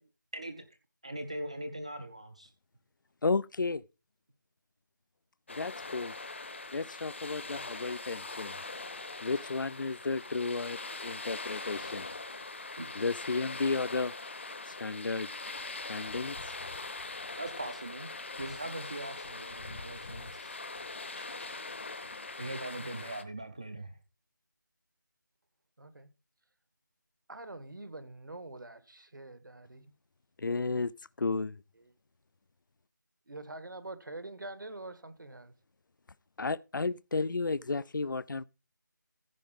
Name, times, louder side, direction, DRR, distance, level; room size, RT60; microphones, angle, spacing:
voice 1, 1.0-2.5 12.8-12.9 17.4-18.1 18.4-20.6 21.4-21.5 22.4-24.0, right 1 dB, 20° right, 0.5 m, -41 dB
voice 2, 3.2-3.8 5.5-6.1 6.7-8.6 9.2-12.1 12.9-14.1 14.7-15.3 15.9-16.4 30.4-30.9 31.2-31.6 36.4-38.4, left 3 dB, 75° left, 0.5 m, -33 dB
sound 1, 5.5-23.2, left 3 dB, 35° left, 0.9 m, -42 dB
voice 3, 25.8-26.1 27.3-29.9 31.8-31.9 33.3-35.5 37.8-37.9, right 2 dB, 75° right, 1.8 m, -45 dB
15.0 x 4.9 x 5.2 m
figure-of-eight pair, 175°, 11 cm